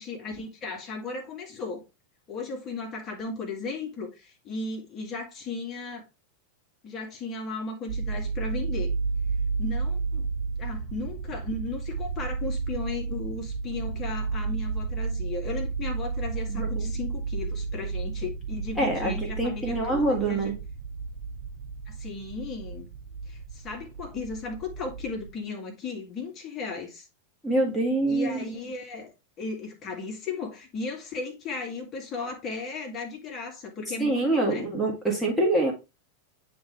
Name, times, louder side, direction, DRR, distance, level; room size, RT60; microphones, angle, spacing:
voice 1, 0.0-1.8 2.3-6.0 6.8-8.9 9.6-10.3 10.6-20.5 21.9-22.9 23.3-27.1 28.1-29.1 29.4-34.7, left 4 dB, 30° left, 2.1 m, -36 dB
sound 1, 7.9-25.3, right 4 dB, 65° right, 0.5 m, -32 dB
voice 2, 16.5-16.9 18.8-20.6 27.4-28.4 34.0-35.7, right 2 dB, 5° left, 1.8 m, -25 dB
9.3 x 3.7 x 3.2 m
figure-of-eight pair, 90°, 0 cm